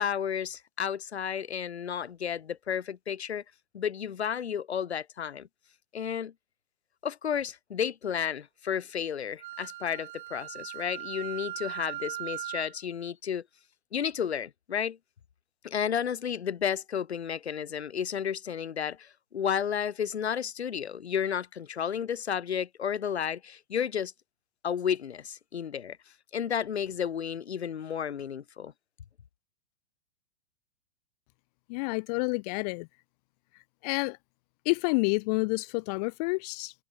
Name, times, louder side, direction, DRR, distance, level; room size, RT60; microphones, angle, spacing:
voice 1, 0.0-3.4 3.7-5.5 5.9-6.3 7.0-13.4 13.9-15.0 15.6-24.1 24.6-26.0 26.3-28.7, left 8 dB, 80° left, 1.1 m, -32 dB
Wind instrument woodwind instrument, 9.4-12.8, right 16 dB, 50° right, 0.6 m, -39 dB
voice 2, 31.7-32.9 33.8-34.2 34.7-36.7, left 28 dB, 40° left, 0.8 m, -29 dB
figure-of-eight pair, 110°, 32 cm